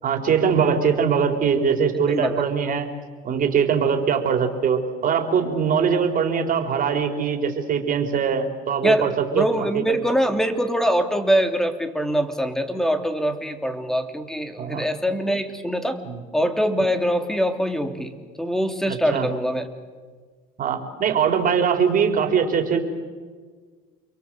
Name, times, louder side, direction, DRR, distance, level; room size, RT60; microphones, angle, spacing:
voice 1, 0.0-2.9 3.2-9.9 14.6-14.9 16.0-16.2 18.9-19.3 20.6-22.8, right 6 dB, 45° right, 4 dB, 4.4 m, -22 dB
voice 2, 2.1-2.4 8.8-16.0 16.3-18.1 18.4-19.7, equal, ahead, 6 dB, 3.0 m, -23 dB
29.5 x 23.0 x 8.0 m, 1.5 s
supercardioid pair, 95°, 20 cm